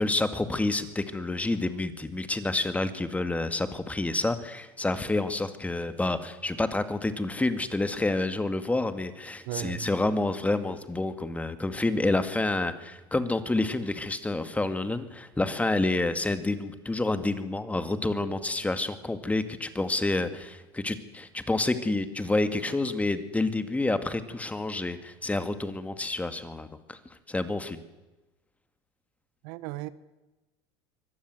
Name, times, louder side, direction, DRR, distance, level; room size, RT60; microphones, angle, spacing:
voice 1, 0.0-27.0 27.3-27.8, left 2 dB, 10° left, 2.2 m, -28 dB
voice 2, 9.5-9.9 29.4-29.9, right 16 dB, 70° right, 1.2 m, -35 dB
24.0 x 18.0 x 7.9 m
hypercardioid pair, 95°, 13 cm